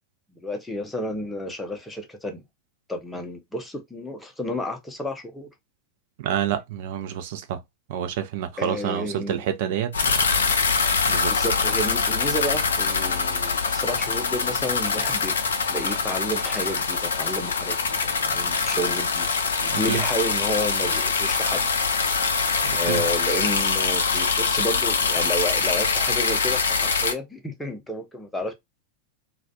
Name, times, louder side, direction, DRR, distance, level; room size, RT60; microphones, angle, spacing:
voice 1, 0.4-2.4 2.9-5.5 8.6-9.4 11.3-15.3 15.7-19.3 19.6-21.7 22.7-28.5, equal, 5° left, 0.6 m, -31 dB
voice 2, 6.2-7.6 7.9-10.2 11.1-11.3 19.9-20.0 22.6-23.0, right 10 dB, 50° right, 0.5 m, -28 dB
sound 1, 9.9-27.1, left 5 dB, 65° left, 0.4 m, -24 dB
2.4 x 2.0 x 2.6 m
figure-of-eight pair, 90°, 0 cm